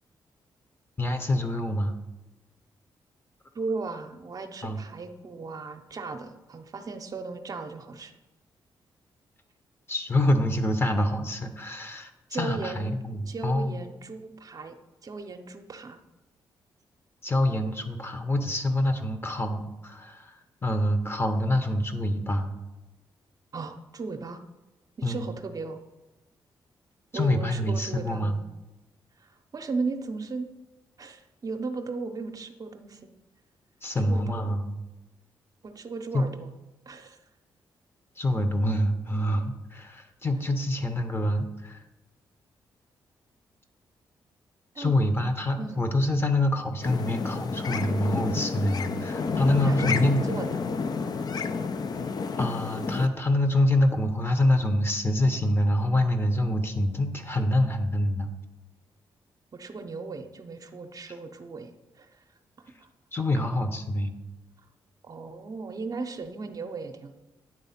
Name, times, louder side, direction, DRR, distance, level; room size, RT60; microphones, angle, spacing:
voice 1, 1.0-2.0 4.6-4.8 9.9-13.8 17.2-20.4 20.6-22.5 25.0-25.3 27.1-28.4 33.8-34.8 36.1-36.3 38.2-41.8 44.8-50.2 52.4-58.3 63.1-64.2, left 1 dB, 25° left, 8 dB, 0.9 m, -26 dB
voice 2, 3.5-8.1 12.3-12.9 13.3-14.7 15.0-16.0 23.5-24.4 25.0-25.8 27.1-28.4 29.2-30.5 31.0-33.1 34.0-34.6 35.6-36.5 36.9-37.2 44.7-44.9 45.6-45.8 49.5-50.5 59.5-61.7 62.0-62.2 62.8-62.9 65.0-67.1, right 4 dB, 45° right, 6 dB, 0.7 m, -36 dB
sound 1, 46.8-53.1, left 5 dB, 50° left, 0.5 m, -30 dB
8.9 x 3.5 x 5.7 m, 1.0 s
cardioid pair, 65°, 9 cm